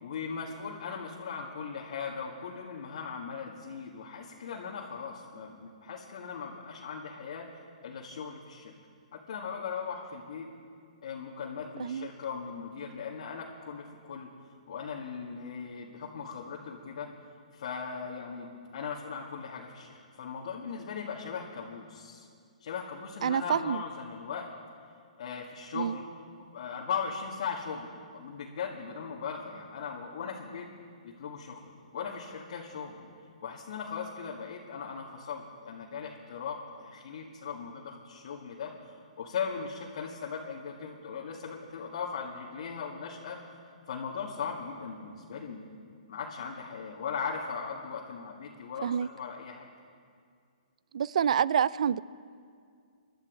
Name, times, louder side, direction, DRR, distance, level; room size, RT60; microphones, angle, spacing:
voice 1, 0.0-7.5 7.8-8.7 9.1-10.5 11.0-14.3 14.7-17.1 17.5-22.3 22.6-24.5 25.2-26.0 26.4-30.7 31.0-33.1 33.4-43.4 43.9-45.6 46.1-49.7, left 6 dB, 60° left, -3 dB, 2.0 m, -38 dB
voice 2, 23.2-23.8 25.7-26.0 48.8-49.1 50.9-52.0, right 8 dB, 65° right, 20 dB, 0.4 m, -27 dB
23.0 x 11.5 x 5.1 m, 2.2 s
hypercardioid pair, 140°, 4 cm